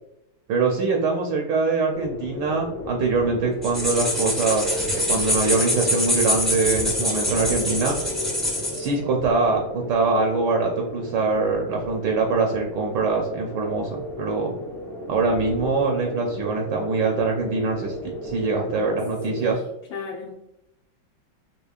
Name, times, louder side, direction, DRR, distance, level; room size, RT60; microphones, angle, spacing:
voice 1, 0.5-8.0 8.8-14.5 15.1-17.9 18.2-19.6, right 4 dB, 75° right, 1 dB, 1.2 m, -23 dB
sound 1, 1.9-19.5, equal, 50° left, 0.7 m, -34 dB
sound 2, 3.6-8.9, left 1 dB, ahead, 0.6 m, -25 dB
voice 2, 19.3-20.3, left 6 dB, 80° left, -1 dB, 1.3 m, -36 dB
4.5 x 2.7 x 2.3 m, 0.85 s
omnidirectional pair, 2.1 m